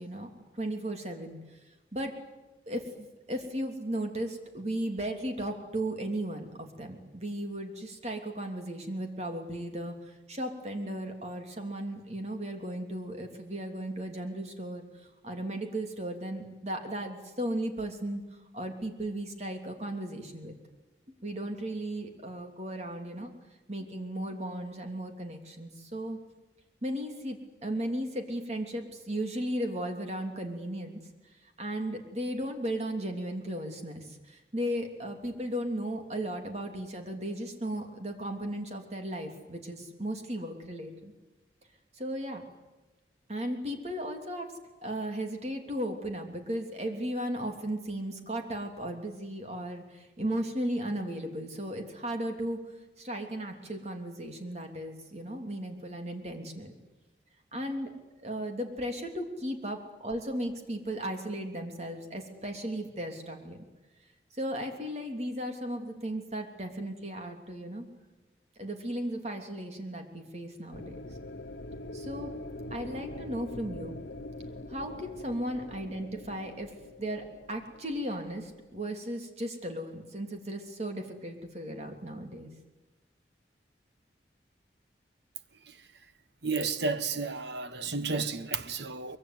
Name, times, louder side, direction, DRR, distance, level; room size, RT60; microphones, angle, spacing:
voice 1, 0.0-1.4 1.9-2.1 2.7-14.8 15.2-18.2 18.5-20.5 21.2-23.3 23.7-26.2 26.8-31.0 31.6-41.1 42.0-42.4 43.3-44.5 44.8-52.6 53.0-56.7 57.5-57.9 58.2-63.6 64.3-67.8 68.6-71.1 71.9-72.3 72.7-74.0 74.7-76.7 77.0-82.5, right 1 dB, 35° right, 3.1 m, -36 dB
sound 1, 70.7-78.8, left 1 dB, 75° left, 1.1 m, -43 dB
voice 2, 86.4-89.2, right 4 dB, 70° right, 1.4 m, -32 dB
24.0 x 23.0 x 9.5 m
head